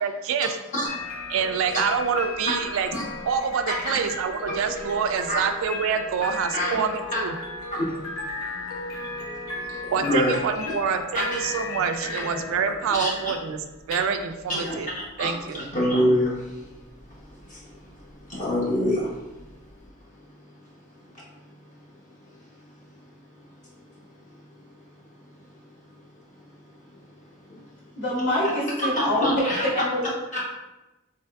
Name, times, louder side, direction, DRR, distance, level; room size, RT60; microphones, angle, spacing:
voice 1, 0.0-0.6 1.3-2.9 3.3-7.3 9.9-13.6 13.9-14.9 15.2-15.6, right 6 dB, 65° right, 9 dB, 0.3 m, -26 dB
sound 1, 0.9-19.9, left 2 dB, 80° left, 0.7 m, -36 dB
voice 2, 7.7-8.0 8.5-8.6 8.8-9.3 9.6-10.4 11.1-11.4 13.0-13.3 14.5-16.8 17.1-19.2 22.3-22.4 23.6-23.8 26.9-27.1 27.5-27.9 28.8-29.7 30.3-30.4, equal, 35° left, -6 dB, 0.8 m, -27 dB
voice 3, 28.0-29.3 29.7-30.1, left 1 dB, 60° left, -8 dB, 1.5 m, -25 dB
3.4 x 3.2 x 2.3 m, 1.0 s
head